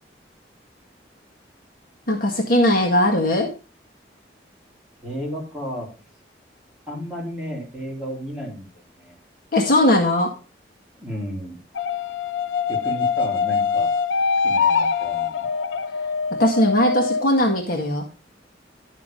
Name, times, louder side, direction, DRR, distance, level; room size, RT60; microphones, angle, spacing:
voice 1, 2.1-3.5 9.5-10.3 16.4-18.0, left 1 dB, 50° left, 0 dB, 1.9 m, -19 dB
voice 2, 5.0-5.9 6.9-9.2 10.9-11.6 12.7-13.9 14.4-15.5, equal, 5° right, -5 dB, 4.3 m, -33 dB
sound 1, 11.8-17.3, left 5 dB, 90° left, 0.6 m, -23 dB
11.5 x 6.5 x 3.8 m, 0.33 s
head